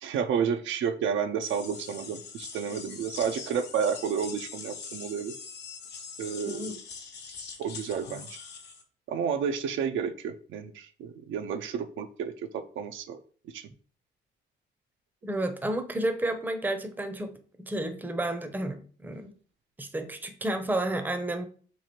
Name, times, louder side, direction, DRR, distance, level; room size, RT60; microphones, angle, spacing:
voice 1, 0.0-5.3 6.2-6.7 7.6-8.4 9.1-13.2 13.5-13.7, right 7 dB, 75° right, 8 dB, 0.4 m, -31 dB
sound 1, 1.4-8.8, left 5 dB, 60° left, 0.8 m, -43 dB
voice 2, 6.5-6.8 15.2-17.3 17.6-19.3 19.8-21.5, right 1 dB, 10° right, 7 dB, 0.6 m, -31 dB
3.1 x 2.4 x 4.2 m, 0.42 s
cardioid pair, 90°, 20 cm